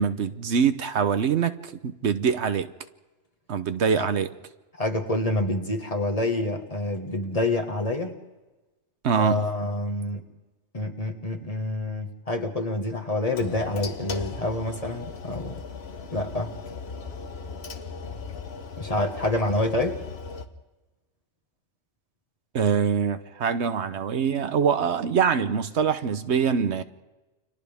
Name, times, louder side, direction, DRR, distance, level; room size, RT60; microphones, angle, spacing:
voice 1, 0.0-2.7 3.5-4.3 9.0-9.4 22.5-26.8, right 6 dB, 70° right, 1.1 m, -24 dB
voice 2, 4.8-8.2 9.2-10.2 10.7-15.6 16.1-16.5 18.8-20.0, left 2 dB, 30° left, 1.6 m, -27 dB
sound 1, 13.3-20.5, left 5 dB, 60° left, 1.3 m, -38 dB
30.0 x 25.0 x 3.5 m
omnidirectional pair, 1.2 m